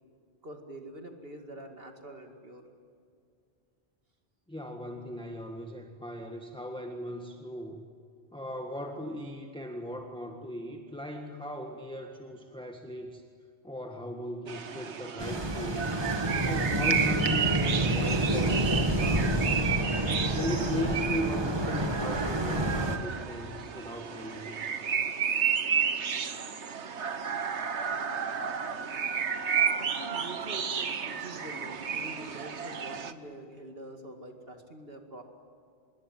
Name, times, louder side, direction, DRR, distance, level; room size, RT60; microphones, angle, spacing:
voice 1, 0.4-2.7 29.8-35.2, right 2 dB, 60° right, 4 dB, 2.4 m, -45 dB
voice 2, 4.5-7.8 8.3-13.2 13.6-15.9 16.4-19.6 20.3-24.8, equal, 5° left, 2 dB, 1.6 m, -38 dB
sound 1, 14.5-33.1, right 7 dB, 85° right, 1.5 m, -32 dB
sound 2, 15.2-23.0, right 1 dB, 25° right, 1.7 m, -28 dB
25.5 x 22.0 x 9.2 m, 2.4 s
omnidirectional pair, 1.1 m